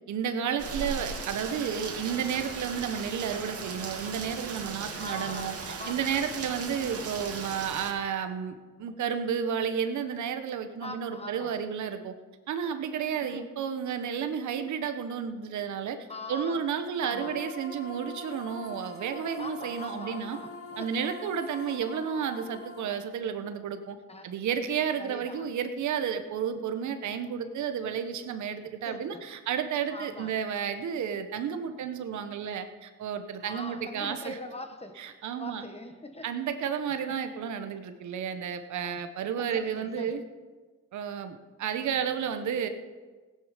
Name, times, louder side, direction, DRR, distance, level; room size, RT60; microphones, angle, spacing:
voice 1, 0.1-12.1 12.5-16.0 16.3-20.4 20.8-24.0 24.2-34.4 35.0-35.7 36.2-40.2 40.9-42.7, right 7 dB, 70° right, 8 dB, 1.2 m, -32 dB
Rain, 0.6-7.9, right 5 dB, 50° right, 2.4 m, -38 dB
voice 2, 5.0-5.5 5.8-6.2 6.6-6.8 10.8-11.6 13.2-13.4 16.1-16.6 17.0-17.4 19.4-20.9 24.1-24.3 25.0-25.5 28.6-29.2 29.9-30.4 33.4-35.0 35.4-36.2 37.1-37.2 38.7-40.2, left 2 dB, 20° left, 7 dB, 1.5 m, -43 dB
sound 1, 17.0-22.8, left 1 dB, 45° left, 2.5 m, -43 dB
16.5 x 10.0 x 5.2 m, 1.4 s
cardioid pair, 90°, 30 cm